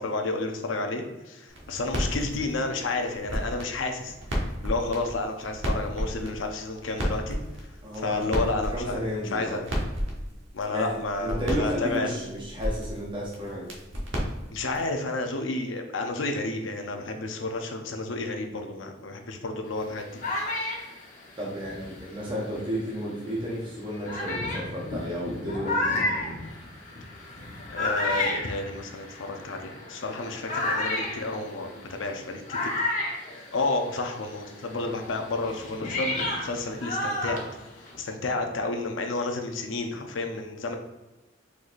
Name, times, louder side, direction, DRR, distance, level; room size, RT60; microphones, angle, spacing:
voice 1, 0.0-4.1 4.6-7.4 8.0-9.6 10.5-12.2 14.5-20.2 27.7-32.8 33.5-37.4 38.0-40.8, left 2 dB, 85° left, 4 dB, 0.7 m, -31 dB
sound 1, 1.5-14.9, equal, 85° right, 1.1 m, -34 dB
voice 2, 7.8-8.4 8.7-9.6 10.7-13.7 21.4-25.8, equal, 25° right, -5 dB, 0.9 m, -32 dB
sound 2, 19.7-22.8 23.4-23.5 24.0-34.1 34.3-38.1, left 2 dB, 45° left, 0.9 m, -32 dB
4.6 x 4.0 x 2.6 m, 1.1 s
head